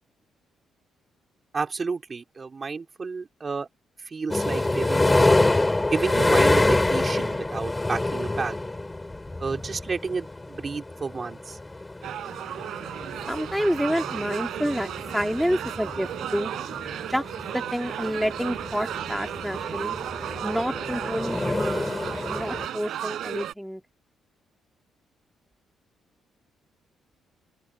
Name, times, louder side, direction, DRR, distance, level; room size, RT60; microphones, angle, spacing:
voice 1, 1.5-3.7 4.1-5.2 5.9-8.6 9.4-11.6, right 4 dB, 35° right, 3.4 m, -31 dB
sound 1, 4.3-22.7, left 2 dB, 15° left, 7.2 m, -27 dB
sound 2, 12.0-23.5, right 11 dB, 75° right, 4.7 m, -34 dB
voice 2, 13.3-16.5 17.1-17.2 17.5-20.0 20.4-23.8, equal, ahead, 3.1 m, -28 dB
open air
cardioid pair, 90°, 0 cm